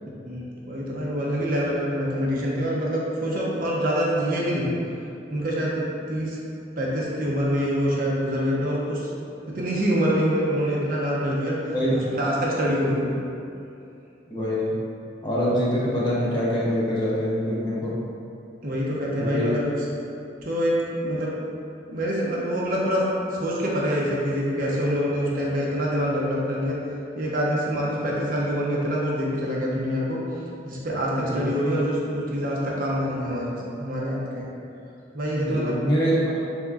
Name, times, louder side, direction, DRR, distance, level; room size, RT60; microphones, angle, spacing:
voice 1, 0.3-4.7 5.3-6.4 6.8-9.1 9.5-11.6 11.9-13.2 18.6-19.7 20.4-21.3 21.9-23.0 23.3-26.8 27.2-30.2 30.6-34.5 35.1-35.7, equal, 50° right, -5 dB, 0.7 m, -25 dB
voice 2, 14.3-14.7 15.2-18.0 19.1-19.4 27.8-27.9 31.2-31.5 35.3-36.4, equal, 25° left, -7 dB, 0.7 m, -24 dB
5.2 x 3.5 x 2.4 m, 2.6 s
head